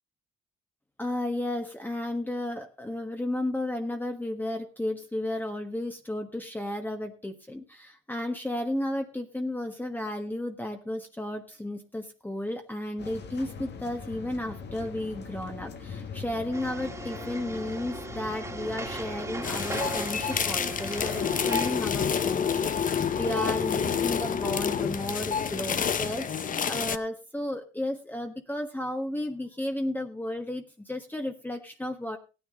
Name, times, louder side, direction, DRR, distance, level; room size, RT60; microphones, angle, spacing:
voice 1, 1.0-32.2, left 1 dB, 10° left, 4 dB, 1.4 m, -33 dB
sound 1, 13.0-26.2, left 5 dB, 60° left, 1.7 m, -42 dB
sound 2, 16.5-21.7, right 2 dB, 15° right, 2.0 m, -38 dB
sound 3, 19.4-27.0, left 7 dB, 45° left, 0.8 m, -28 dB
16.0 x 9.7 x 3.8 m, 0.32 s
cardioid pair, 90°, 20 cm